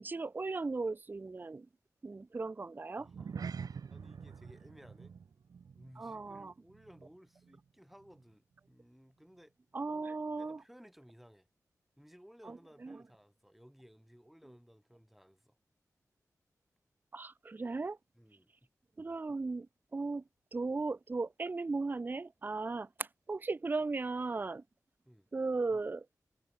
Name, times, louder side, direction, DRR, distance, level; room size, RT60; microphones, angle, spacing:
voice 1, 0.0-1.7 2.0-3.1 6.0-6.5 9.7-10.6 12.5-12.6 12.8-13.0 17.1-18.0 19.0-19.7 19.9-20.2 20.5-24.6 25.3-26.1, right 3 dB, 30° right, 0.4 m, -36 dB
voice 2, 3.0-5.1 5.7-9.5 10.4-11.5 12.0-15.6 18.1-18.7 25.1-25.3, equal, ahead, 2.9 m, -59 dB
sound 1, 3.0-7.7 7.9-8.2 8.7-8.8, right 6 dB, 80° right, 1.1 m, -46 dB
wide cardioid pair, 70°, 6 cm